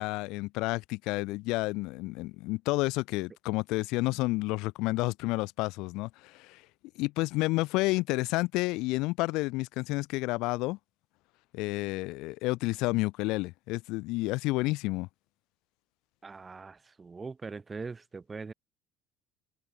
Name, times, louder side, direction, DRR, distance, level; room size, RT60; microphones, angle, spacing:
voice 1, 0.0-6.6 7.0-10.8 11.5-15.1, left 22 dB, 75° left, 0.3 m, -30 dB
voice 2, 16.2-18.5, right 4 dB, 20° right, 1.7 m, -41 dB
cardioid pair, 130°, 0 cm